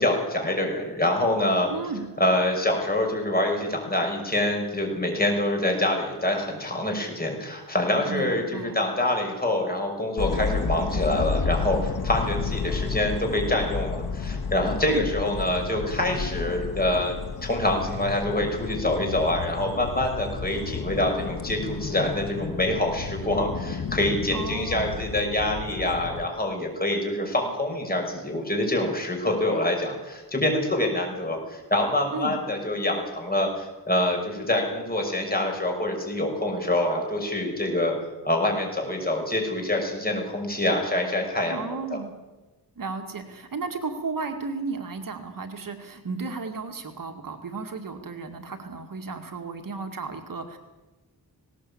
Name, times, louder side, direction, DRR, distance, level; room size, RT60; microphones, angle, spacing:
voice 1, 0.0-1.7 2.2-37.9 38.2-42.0, left 1 dB, 25° left, 2 dB, 5.9 m, -26 dB
voice 2, 1.7-2.1 8.1-8.8 14.8-15.1 24.3-25.0 32.1-32.4 41.5-42.1 42.8-50.6, right 4 dB, 60° right, 5 dB, 2.2 m, -34 dB
sound 1, 10.2-26.2, left 5 dB, 70° left, 1.4 m, -32 dB
19.0 x 18.0 x 8.6 m, 1.2 s
wide cardioid pair, 125°, 38 cm